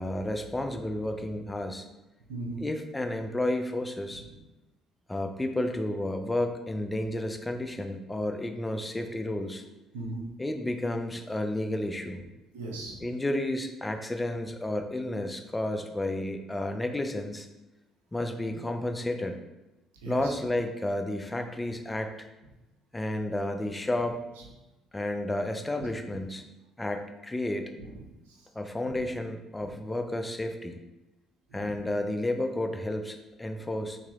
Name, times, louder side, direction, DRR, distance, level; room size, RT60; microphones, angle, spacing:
voice 1, 0.0-1.9 2.6-4.2 5.1-9.6 10.4-12.2 13.0-17.5 18.1-19.4 20.1-22.3 22.9-24.2 24.9-26.4 26.8-27.7 28.5-30.8 31.5-34.0, left 1 dB, 15° left, 6 dB, 0.5 m, -31 dB
voice 2, 2.3-2.6 4.1-4.2 9.9-10.3 12.5-13.0 20.0-20.3 27.8-28.4 28.9-29.0 29.6-29.7 31.5-31.8, right 2 dB, 85° right, -2 dB, 0.7 m, -39 dB
3.0 x 2.8 x 3.6 m, 0.98 s
hypercardioid pair, 60°, 0 cm